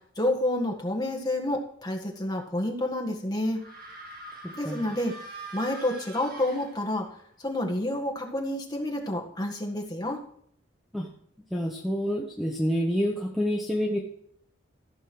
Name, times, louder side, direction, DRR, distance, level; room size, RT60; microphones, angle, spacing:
voice 1, 0.1-3.6 4.5-5.1 5.5-7.1 7.4-10.2, left 1 dB, 20° left, 1 dB, 1.7 m, -29 dB
sound 1, 3.5-7.2, right 2 dB, 50° right, 2.4 m, -43 dB
voice 2, 4.4-4.8 10.9-11.1 11.5-14.0, equal, ahead, -1 dB, 1.0 m, -28 dB
14.5 x 5.5 x 6.1 m, 0.65 s
head